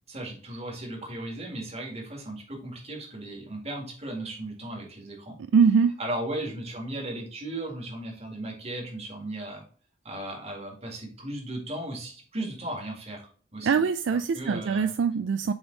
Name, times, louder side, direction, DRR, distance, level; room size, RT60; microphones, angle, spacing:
voice 1, 0.1-5.4 6.0-9.6 10.0-13.8 14.3-14.9, right 1 dB, 35° right, 2.0 m, -36 dB
voice 2, 5.5-5.9 13.6-15.5, right 6 dB, 65° right, 0.3 m, -23 dB
7.1 x 3.5 x 3.9 m
head